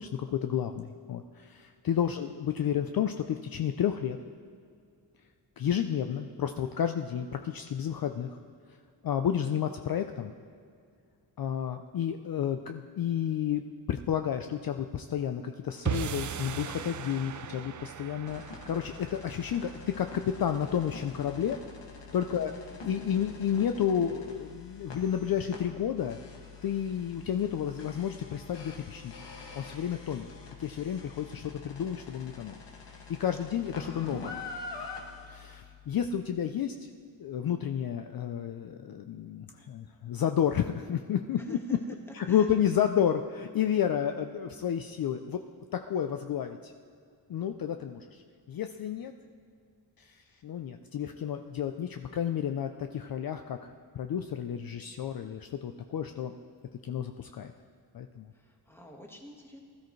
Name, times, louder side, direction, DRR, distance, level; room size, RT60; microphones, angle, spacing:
voice 1, 0.0-4.2 5.6-8.4 9.0-10.3 11.4-13.6 13.9-21.6 22.1-22.5 22.8-26.2 26.6-29.2 29.5-30.3 30.6-32.6 32.9-34.4 35.2-36.9 37.2-41.6 42.1-45.4 45.7-46.7 47.3-48.2 48.5-49.1 50.0-53.7 53.9-56.3 56.8-57.5 57.9-58.3, left 9 dB, 50° left, 7 dB, 0.5 m, -31 dB
sound 1, 15.9-22.2, right 8 dB, 40° right, 0.5 m, -39 dB
sound 2, 18.3-36.1, left 4 dB, 70° left, 2.0 m, -46 dB
voice 2, 22.3-22.8 41.4-41.8 42.1-42.8 58.3-59.6, left 1 dB, 5° left, 1 dB, 1.5 m, -50 dB
20.0 x 13.0 x 3.2 m, 2.2 s
wide cardioid pair, 155°, 45 cm